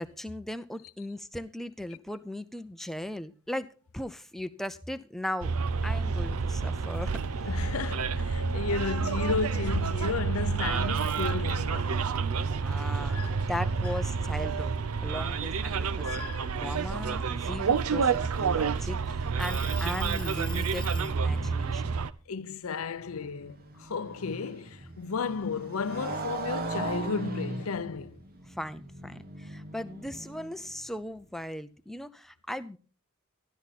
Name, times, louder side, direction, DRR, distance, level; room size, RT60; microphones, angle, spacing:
voice 1, 0.0-5.5 5.8-7.5 12.3-14.7 15.0-16.3 16.6-21.8 28.4-32.8, left 1 dB, ahead, 0.6 m, -38 dB
Bus, 5.4-22.1, right 5 dB, 80° right, 0.6 m, -29 dB
voice 2, 7.4-12.0 13.1-13.4 16.0-16.5 21.3-21.5 22.3-28.2, left 5 dB, 70° left, 0.6 m, -33 dB
sound 1, 10.8-11.8 12.3-14.1 14.5-14.8 15.2-17.0 17.7-18.8 19.4-21.2, left 8 dB, 20° left, 1.1 m, -46 dB
Motorcycle, 22.7-30.8, right 2 dB, 40° right, 1.3 m, -39 dB
12.5 x 12.5 x 4.2 m
head